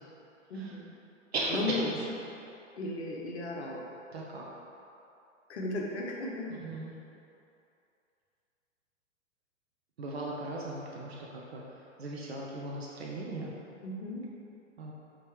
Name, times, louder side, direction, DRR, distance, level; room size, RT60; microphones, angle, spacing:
voice 1, 0.5-0.9 1.5-1.9 2.8-3.8 5.5-6.5 13.8-14.2, left 2 dB, 55° left, -2 dB, 0.9 m, -35 dB
voice 2, 1.3-2.0 4.1-4.5 6.5-6.9 10.0-13.5 14.8-14.9, right 2 dB, 55° right, -3 dB, 0.7 m, -37 dB
5.5 x 3.1 x 3.1 m, 2.7 s
figure-of-eight pair, 110°, 39 cm